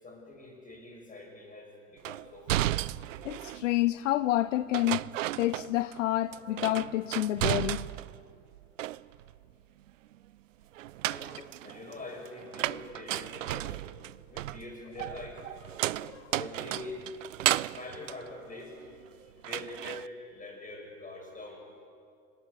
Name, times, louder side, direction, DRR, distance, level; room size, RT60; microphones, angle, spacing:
voice 1, 0.0-2.8 11.1-13.7 14.3-15.4 16.3-17.1 17.8-18.8 19.2-21.6, left 2 dB, 20° left, 7.0 m, -44 dB
sound 1, 2.0-3.7 4.7-6.0 6.3-8.2 8.5-9.4 10.8-19.1 19.4-20.1, right 14 dB, 75° right, 0.5 m, -34 dB
voice 2, 3.2-5.0 5.4-7.9 16.0-16.3, left 15 dB, 70° left, 0.6 m, -29 dB
26.5 x 13.0 x 8.3 m
figure-of-eight pair, 70°, 39 cm